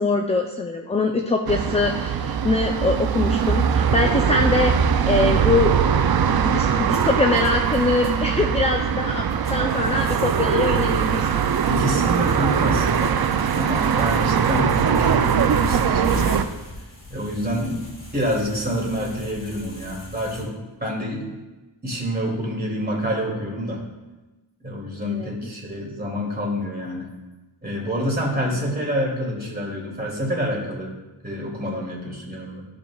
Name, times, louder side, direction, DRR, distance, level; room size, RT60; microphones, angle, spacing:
voice 1, 0.0-4.7 5.1-5.7 6.4-9.2 9.5-11.3 25.0-25.3, left 3 dB, 15° left, 3 dB, 0.5 m, -23 dB
sound 1, 1.5-16.4, right 7 dB, 50° right, 0.5 m, -21 dB
sound 2, 6.9-20.4, left 1 dB, 40° left, 1.9 m, -40 dB
voice 2, 11.6-13.2 13.5-16.4 17.1-17.8 18.1-20.5 20.8-21.3 21.8-23.8 24.6-27.1 27.6-30.9 31.2-32.6, equal, 20° right, -3 dB, 2.6 m, -27 dB
13.5 x 5.0 x 2.3 m, 1.1 s
wide cardioid pair, 65°, 48 cm